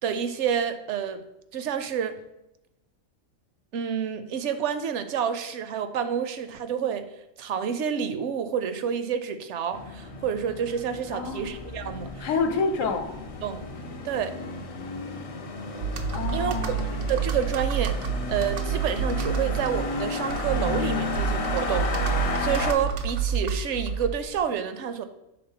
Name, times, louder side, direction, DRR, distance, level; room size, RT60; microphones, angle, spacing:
voice 1, 0.0-1.2 1.5-2.2 3.7-7.1 7.4-12.3 13.4-13.6 14.0-14.3 16.3-16.6 17.1-18.0 18.3-21.9 22.2-25.0, right 8 dB, 65° right, 10 dB, 0.8 m, -29 dB
sound 1, 9.7-22.7, left 4 dB, 55° left, 0.4 m, -33 dB
voice 2, 11.1-11.6 12.2-13.2 16.1-17.0, left 4 dB, 75° left, 7 dB, 1.1 m, -28 dB
Computer keyboard, 15.8-24.4, right 6 dB, 90° right, 1.0 m, -29 dB
5.8 x 3.5 x 5.5 m, 0.91 s
omnidirectional pair, 1.4 m